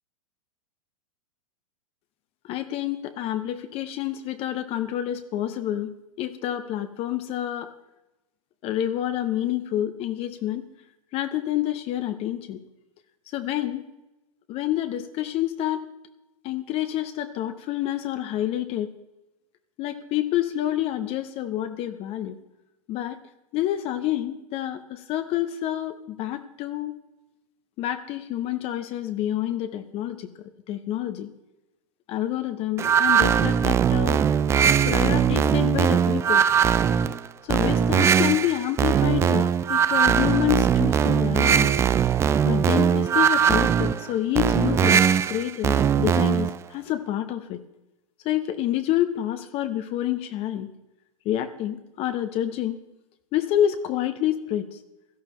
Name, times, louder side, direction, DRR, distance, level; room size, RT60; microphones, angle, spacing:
voice 1, 2.4-7.7 8.6-10.6 11.1-12.6 13.3-13.9 14.5-15.8 16.4-18.9 19.8-22.4 22.9-23.2 23.5-27.0 27.8-30.3 30.7-31.3 32.1-34.3 34.8-36.4 37.4-41.7 42.4-47.6 48.2-50.7 51.2-52.8 53.3-54.8, left 12 dB, 35° left, 9 dB, 0.8 m, -28 dB
sound 1, 32.8-46.6, right 8 dB, 15° right, 0.3 m, -20 dB
17.0 x 13.0 x 3.1 m, 0.96 s
figure-of-eight pair, 100°, 18 cm